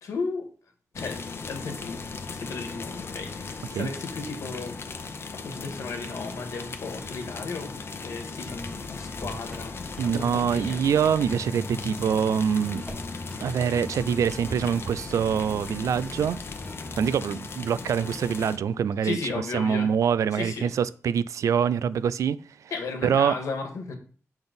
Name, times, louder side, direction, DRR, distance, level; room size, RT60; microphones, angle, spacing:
voice 1, 0.0-0.5 0.9-1.2 1.5-4.7 5.4-10.8 19.0-19.9 20.3-20.7 22.7-24.0, left 4 dB, 90° left, 1.6 m, -35 dB
sound 1, 0.9-18.6, left 4 dB, 50° left, 0.7 m, -38 dB
sound 2, 8.5-17.0, left 2 dB, 20° left, 1.0 m, -41 dB
Motor vehicle (road), 9.1-9.8 12.8-13.4, right 1 dB, 10° right, 1.5 m, -42 dB
voice 2, 10.0-12.8 13.4-16.4 17.0-19.2 19.5-22.4 23.0-23.3, right 7 dB, 85° right, 0.3 m, -25 dB
6.9 x 4.0 x 5.3 m
wide cardioid pair, 115°, 5 cm